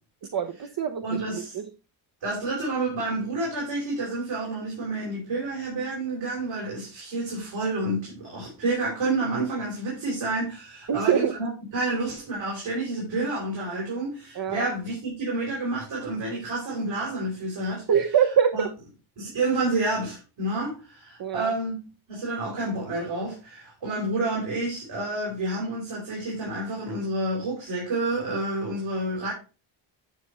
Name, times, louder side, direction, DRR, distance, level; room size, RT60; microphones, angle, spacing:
voice 1, 0.3-1.7 10.9-11.3 14.3-14.7 17.9-18.7 21.2-21.5, right 8 dB, 50° right, 8 dB, 0.9 m, -24 dB
voice 2, 1.0-1.6 2.2-17.8 18.5-18.6 19.2-21.8 22.1-29.3, right 2 dB, 75° right, -4 dB, 5.0 m, -29 dB
9.6 x 5.3 x 4.2 m, 0.32 s
cardioid pair, 90°, 47 cm